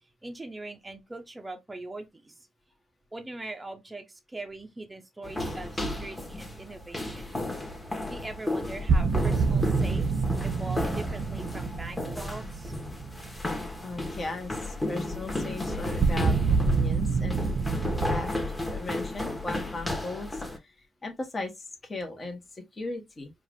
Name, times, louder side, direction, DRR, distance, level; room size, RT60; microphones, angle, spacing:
voice 1, 0.2-2.5 3.1-7.3 8.1-12.7, right 2 dB, 15° right, 0.9 m, -41 dB
sound 1, 5.2-20.6, left 2 dB, 10° left, 1.4 m, -33 dB
sound 2, 7.1-7.2 7.5-7.6 8.9-13.9 16.0-18.2, right 4 dB, 50° right, 0.7 m, -27 dB
voice 2, 13.8-17.4 18.1-18.3 18.7-20.7 21.0-23.3, left 2 dB, 25° left, 1.5 m, -37 dB
4.6 x 2.6 x 3.6 m
cardioid pair, 90°, 0 cm